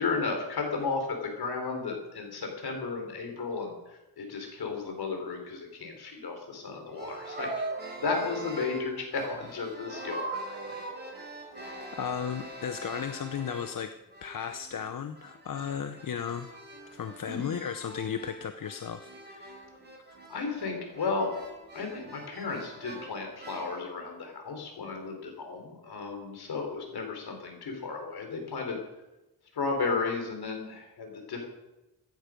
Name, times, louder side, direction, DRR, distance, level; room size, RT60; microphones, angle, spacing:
voice 1, 0.0-7.6 8.0-10.8 17.2-17.6 20.3-21.3 21.7-28.8 29.5-31.4, left 4 dB, 75° left, 3 dB, 4.3 m, -34 dB
sound 1, 6.9-13.8 14.1-23.9, right 2 dB, 25° right, 4.6 m, -42 dB
voice 2, 11.6-13.9 14.2-16.5 16.9-19.7, left 8 dB, 55° left, 9 dB, 0.9 m, -35 dB
16.5 x 13.0 x 5.2 m, 0.99 s
cardioid pair, 95°, 39 cm